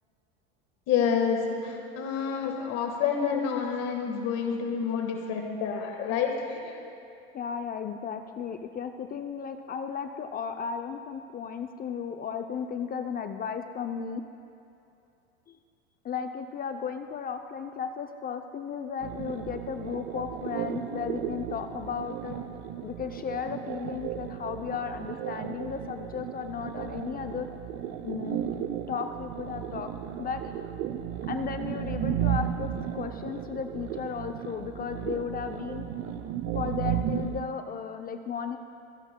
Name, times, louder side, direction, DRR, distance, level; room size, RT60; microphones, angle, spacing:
voice 1, 0.9-6.8, left 6 dB, 55° left, 3 dB, 1.6 m, -28 dB
voice 2, 7.3-14.2 15.5-15.6 16.0-22.4 22.8-27.5 28.0-28.4 28.9-29.9 30.2-30.6 31.3-35.8 36.5-38.6, left 7 dB, 30° left, 7 dB, 0.6 m, -35 dB
sound 1, 19.0-37.4, right 10 dB, 50° right, 0.8 m, -34 dB
26.0 x 11.0 x 2.2 m, 2.7 s
hypercardioid pair, 95°, 31 cm